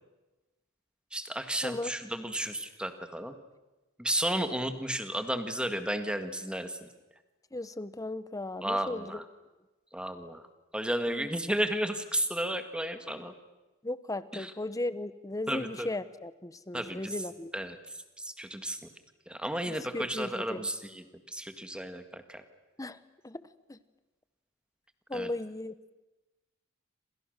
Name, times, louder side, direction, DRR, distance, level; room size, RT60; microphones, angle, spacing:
voice 1, 1.1-3.4 4.0-6.9 8.6-9.2 9.9-10.4 10.7-13.3 14.3-14.5 15.5-15.9 16.7-17.1 17.5-17.8 18.2-18.9 19.3-22.4 25.1-25.3, right 1 dB, 5° right, 8 dB, 1.8 m, -33 dB
voice 2, 7.5-9.2 11.1-11.3 13.8-17.5 19.7-20.6 22.8-23.0 23.2-23.4 23.7-23.8 25.1-25.9, left 2 dB, 15° left, 14 dB, 1.0 m, -36 dB
28.5 x 27.0 x 6.6 m, 1.1 s
head